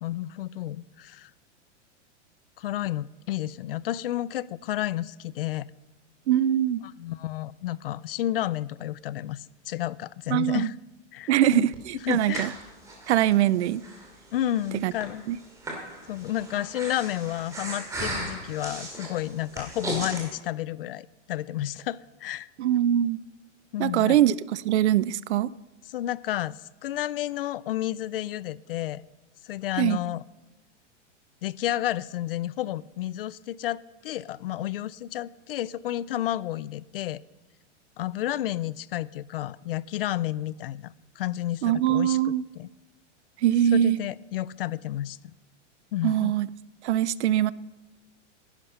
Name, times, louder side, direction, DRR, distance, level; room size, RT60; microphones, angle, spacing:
voice 1, 0.0-1.3 2.6-5.7 7.0-10.7 11.1-11.7 12.0-12.5 14.3-15.2 16.1-22.5 23.7-24.2 25.9-29.0 29.4-30.2 31.4-37.2 38.0-42.7 43.7-45.2 45.9-46.3, left 13 dB, 50° left, 0.4 m, -31 dB
voice 2, 6.3-6.8 10.3-10.7 11.3-12.5 13.1-13.8 14.8-14.9 15.3-15.4 22.6-23.2 23.8-25.5 29.8-30.0 41.6-42.4 43.4-44.0 46.0-46.5 46.8-47.5, right 11 dB, 65° right, 0.6 m, -22 dB
Breathing, 11.7-20.2, right 1 dB, 10° right, 2.5 m, -37 dB
19.5 x 11.0 x 5.6 m
supercardioid pair, 175°, 37 cm